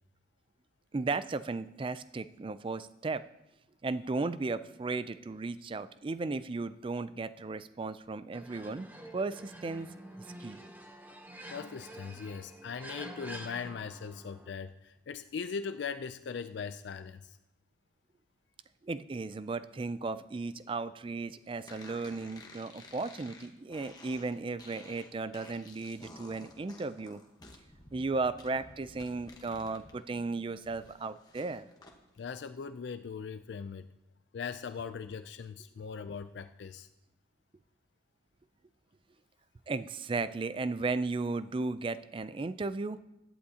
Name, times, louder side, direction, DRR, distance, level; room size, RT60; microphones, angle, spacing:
voice 1, 0.9-3.2 3.8-8.9 9.1-9.9 10.4-10.6 18.8-27.2 27.9-31.7 39.7-43.0, right 3 dB, 25° right, 14 dB, 0.3 m, -35 dB
sound 1, 8.3-14.5, right 1 dB, 10° right, 0.8 m, -48 dB
voice 2, 11.5-17.4 32.2-33.9 34.3-36.9, left 6 dB, 60° left, 10 dB, 0.4 m, -40 dB
sound 2, 21.7-30.0 30.3-32.0, left 2 dB, 20° left, 1.2 m, -53 dB
16.5 x 11.0 x 2.8 m, 0.98 s
head